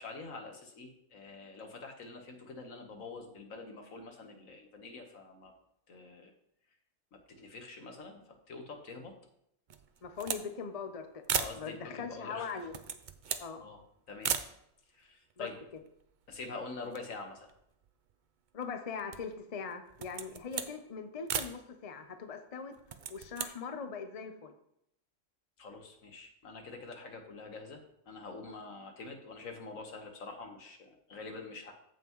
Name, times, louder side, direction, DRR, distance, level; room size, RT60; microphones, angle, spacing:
voice 1, 0.0-5.5 5.9-6.3 7.1-8.2 8.5-9.1 11.4-12.5 13.3-13.8 14.1-14.3 14.9-15.6 16.3-17.5 25.6-31.7, left 3 dB, 75° left, 4 dB, 1.8 m, -46 dB
sound 1, 9.7-10.5 10.8-10.9 11.2-11.6 12.5-13.5 14.2-14.5 15.3-15.4 15.6-16.5 16.8-18.1 18.6-19.4 19.9-20.7 21.3-21.6 22.7-23.5, right 7 dB, 55° right, 0.6 m, -37 dB
voice 2, 10.0-11.3 11.6-12.7 13.4-13.6 15.4-15.5 18.5-22.8 23.1-24.5, left 5 dB, 35° left, 7 dB, 0.7 m, -41 dB
14.5 x 5.6 x 3.1 m, 0.75 s
omnidirectional pair, 1.4 m